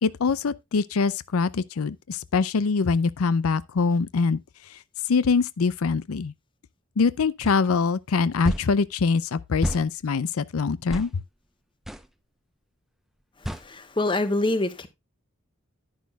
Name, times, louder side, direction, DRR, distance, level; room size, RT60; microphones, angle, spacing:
voice 1, 0.0-4.4 4.7-4.8 5.1-6.3 7.0-11.1, left 4 dB, 90° left, 0.5 m, -24 dB
sound 1, 7.4-7.6 8.4-8.7 9.6-9.9 10.9-11.1 11.9-12.1 13.4-13.7, equal, ahead, 0.6 m, -29 dB
voice 2, 13.5-14.9, left 2 dB, 25° left, 1.0 m, -25 dB
10.5 x 10.5 x 2.3 m
head